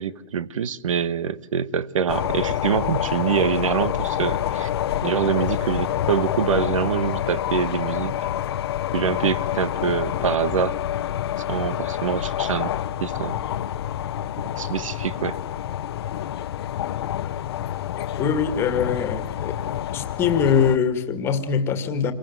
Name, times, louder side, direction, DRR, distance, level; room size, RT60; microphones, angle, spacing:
voice 1, 0.0-4.7 5.0-8.1 8.9-10.8 11.5-13.4 14.6-15.4, right 7 dB, 75° right, 1.4 m, -25 dB
sound 1, 2.1-20.8, left 11 dB, 50° left, 1.0 m, -27 dB
voice 2, 18.2-19.5 19.9-22.1, left 7 dB, 15° left, 1.9 m, -22 dB
27.5 x 23.0 x 9.4 m
hypercardioid pair, 170°, 17 cm